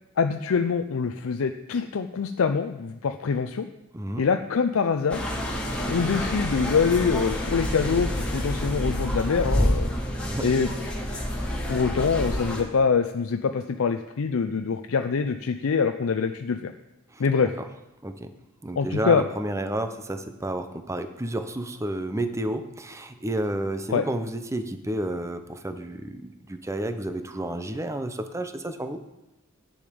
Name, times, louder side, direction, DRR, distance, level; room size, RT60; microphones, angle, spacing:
voice 1, 0.2-3.7 4.2-5.2 5.9-9.9 10.4-10.7 11.7-16.7 17.2-17.5 18.8-19.2 23.9-24.0, left 5 dB, 70° left, 7 dB, 0.5 m, -24 dB
sound 1, 5.1-12.6, equal, 5° left, 2.6 m, -28 dB
voice 2, 18.6-29.0, right 1 dB, 15° right, 8 dB, 0.6 m, -31 dB
10.0 x 8.6 x 5.1 m, 0.95 s
head